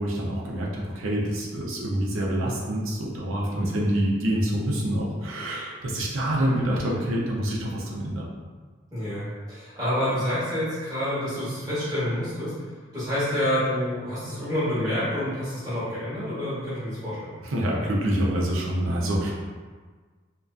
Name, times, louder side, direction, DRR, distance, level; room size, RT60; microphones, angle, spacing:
voice 1, 0.0-8.3 17.4-19.3, right 1 dB, 75° right, -3 dB, 0.5 m, -26 dB
voice 2, 8.9-12.5 12.9-17.3, left 1 dB, 20° right, -12 dB, 1.0 m, -28 dB
2.5 x 2.2 x 2.3 m, 1.5 s
head